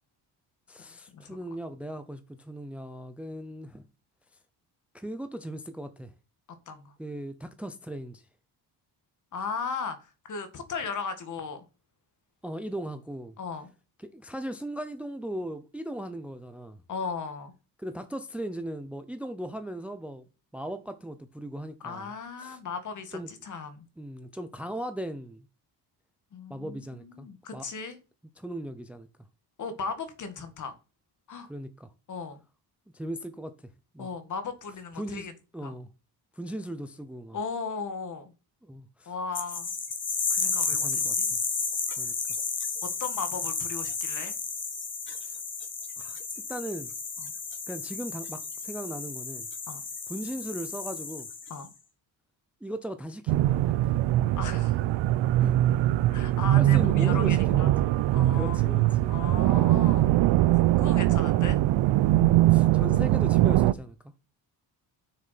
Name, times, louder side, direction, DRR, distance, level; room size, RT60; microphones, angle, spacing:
voice 1, 0.7-3.9 4.9-6.1 7.0-8.3 12.4-13.3 14.0-16.8 17.8-20.3 20.5-22.1 22.4-22.6 23.1-23.3 24.0-25.5 26.5-27.6 28.4-29.1 31.5-31.9 32.9-34.1 34.9-35.3 35.5-35.9 36.3-37.4 38.6-39.1 40.8-41.4 42.0-42.1 45.2-45.4 46.0-46.2 46.5-46.9 47.7-49.5 50.1-51.3 52.6-54.0 55.4-55.6 56.2-57.9 58.3-59.1 62.2-63.9, right 1 dB, 5° right, 0.6 m, -38 dB
voice 2, 9.3-11.6 13.4-13.7 16.9-17.5 21.8-23.9 26.3-28.0 29.6-30.7 31.3-31.5 32.1-32.4 34.0-35.3 35.6-35.7 37.3-38.3 39.1-39.7 40.3-41.3 42.0-42.1 43.0-44.4 47.2-47.3 49.7-49.8 51.5-51.7 54.4-54.8 56.1-57.7 58.1-58.6 59.1-60.2 60.8-61.6, left 5 dB, 45° left, 1.9 m, -36 dB
sound 1, 39.3-51.7, left 4 dB, 25° left, 1.5 m, -32 dB
sound 2, 53.3-63.7, right 15 dB, 85° right, 0.7 m, -22 dB
7.6 x 6.5 x 5.8 m
cardioid pair, 165°, 42 cm